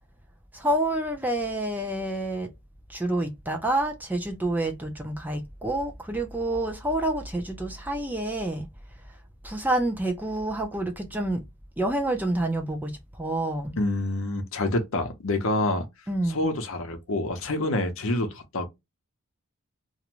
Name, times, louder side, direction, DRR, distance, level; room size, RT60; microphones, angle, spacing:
voice 1, 0.5-2.5 2.9-8.7 9.4-11.4 11.8-13.7 16.1-16.5, right 1 dB, 10° right, 0.4 m, -28 dB
voice 2, 13.8-15.8 16.3-18.7, left 2 dB, 65° left, 0.7 m, -27 dB
2.5 x 2.1 x 2.9 m
head